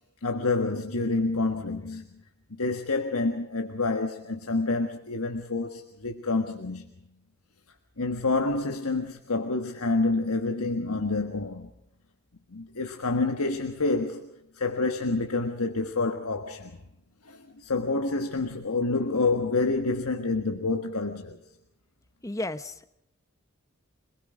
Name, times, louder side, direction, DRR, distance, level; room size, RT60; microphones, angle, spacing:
voice 1, 0.2-2.0 2.5-6.9 8.0-11.7 12.5-16.8 17.2-21.4, left 3 dB, 90° left, 1.6 m, -28 dB
voice 2, 22.2-22.9, left 2 dB, 15° left, 1.0 m, -33 dB
26.5 x 20.5 x 5.0 m
head